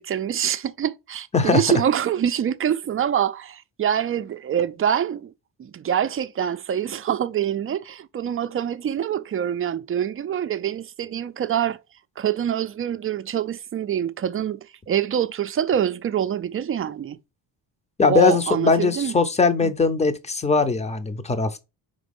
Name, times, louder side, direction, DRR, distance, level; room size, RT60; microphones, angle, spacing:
voice 1, 0.0-5.3 5.6-11.8 12.2-17.2 18.1-19.1 19.6-19.7, right 9 dB, 30° right, 0.4 m, -25 dB
voice 2, 1.3-1.8 18.0-21.6, left 4 dB, 15° left, 0.7 m, -20 dB
5.2 x 3.9 x 5.3 m
cardioid pair, 120°, 43 cm